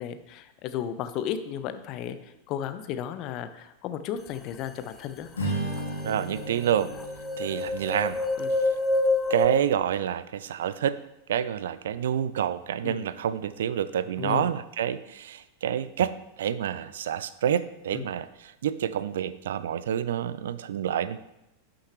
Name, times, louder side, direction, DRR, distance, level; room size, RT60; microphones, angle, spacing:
voice 1, 0.0-5.3 8.4-8.6 12.8-13.0 14.2-14.5 17.9-18.1, left 9 dB, 40° left, 11 dB, 0.7 m, -34 dB
Strum, 5.3-9.8, right 1 dB, 70° left, 2.3 m, -36 dB
sound 1, 5.4-5.5 5.7-9.5, left 2 dB, 15° left, 0.9 m, -27 dB
voice 2, 6.0-6.9 7.4-8.2 9.3-11.0 11.3-21.2, right 9 dB, 60° right, 15 dB, 0.4 m, -28 dB
11.5 x 6.4 x 3.1 m, 0.89 s
figure-of-eight pair, 90°, 0 cm